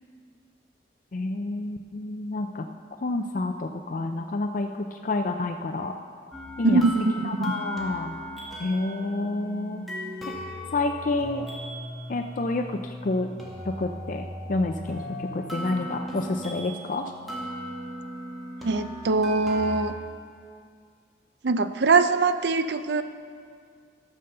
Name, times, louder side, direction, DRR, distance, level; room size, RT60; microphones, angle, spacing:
voice 1, 1.1-2.7 3.0-5.9 6.6-6.8 7.2-8.2 8.6-9.8 10.3-10.4 10.7-11.5 12.1-13.3 13.7-17.0, left 2 dB, 45° left, 5 dB, 0.4 m, -29 dB
sound 1, 6.3-19.8, equal, ahead, 1.6 m, -37 dB
voice 2, 18.6-19.9 21.4-23.0, right 3 dB, 65° right, 11 dB, 0.5 m, -22 dB
13.5 x 6.9 x 6.7 m, 2.1 s
head